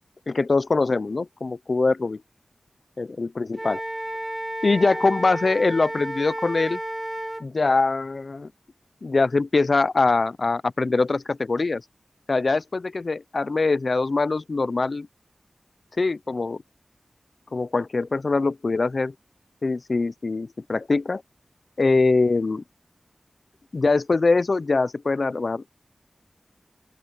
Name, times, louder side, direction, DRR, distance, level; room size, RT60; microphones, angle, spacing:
voice 1, 0.3-2.2 3.0-3.8 4.6-6.8 7.4-8.5 9.0-11.8 12.3-15.1 16.0-16.6 17.5-19.1 19.6-21.2 21.8-22.6 23.7-25.6, left 3 dB, 65° left, 0.5 m, -23 dB
Wind instrument woodwind instrument, 3.5-7.4, right 1 dB, 15° right, 0.5 m, -32 dB
open air
wide cardioid pair, 50°, 0 cm